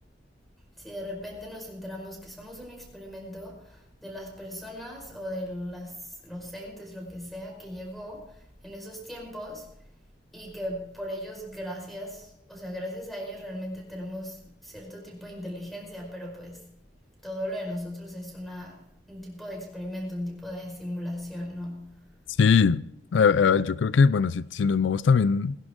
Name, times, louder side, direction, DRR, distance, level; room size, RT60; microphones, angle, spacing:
voice 1, 0.8-9.7 10.3-16.8 17.2-22.1, equal, ahead, 5.1 m, -38 dB
voice 2, 22.4-22.8 23.1-25.6, left 5 dB, 90° left, 0.4 m, -21 dB
21.0 x 11.5 x 3.7 m
head